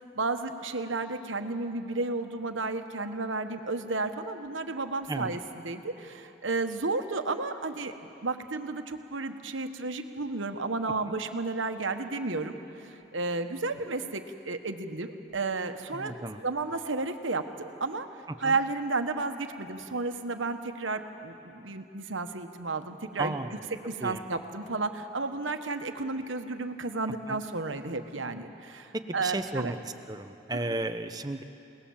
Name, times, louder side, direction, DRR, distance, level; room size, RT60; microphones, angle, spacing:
voice 1, 0.0-7.9 8.2-16.1 16.4-18.1 18.4-23.3 23.8-29.7 30.5-30.8, right 3 dB, 85° right, 7 dB, 1.3 m, -32 dB
voice 2, 15.9-16.4 18.4-18.6 23.2-23.6 24.0-24.2 27.3-27.4 28.9-31.4, right 2 dB, 20° right, 8 dB, 0.8 m, -34 dB
29.0 x 19.0 x 7.2 m, 2.9 s
head